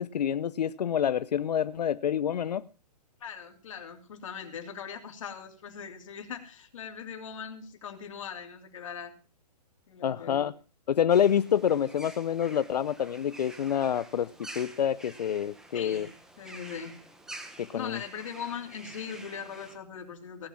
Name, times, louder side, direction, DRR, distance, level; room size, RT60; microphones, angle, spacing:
voice 1, 0.0-2.6 10.0-10.5 10.9-16.1 17.6-18.0, left 9 dB, 75° left, 0.7 m, -27 dB
voice 2, 3.2-9.1 9.9-10.4 15.7-16.1 16.4-16.9 17.7-20.5, left 7 dB, 50° left, 3.1 m, -40 dB
sound 1, 11.1-19.8, right 1 dB, 5° right, 1.1 m, -48 dB
17.5 x 8.6 x 5.9 m
hypercardioid pair, 165°, 21 cm